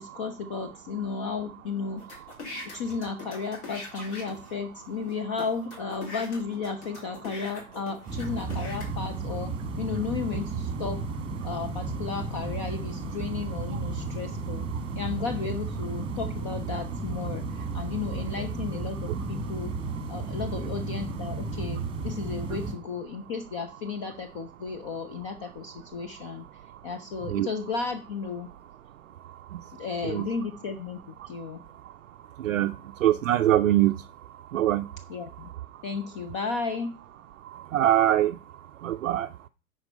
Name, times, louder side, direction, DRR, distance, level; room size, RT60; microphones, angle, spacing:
voice 1, 0.0-2.2 2.5-11.0 11.4-14.7 14.9-19.7 20.1-26.5 26.8-28.5 29.7-31.6 35.1-35.5 35.8-36.9, left 5 dB, 20° left, 7 dB, 0.4 m, -34 dB
sound 1, 2.0-4.5 5.1-5.2 5.4-8.9, left 3 dB, 50° left, 3.8 m, -42 dB
sound 2, 8.1-22.7, right 3 dB, 10° right, 1.4 m, -33 dB
voice 2, 32.4-32.7 33.0-33.9 34.5-34.9 37.7-38.4 38.8-39.3, right 13 dB, 60° right, 8 dB, 0.5 m, -23 dB
10.0 x 4.6 x 5.3 m, 0.35 s
figure-of-eight pair, 100°, 45 cm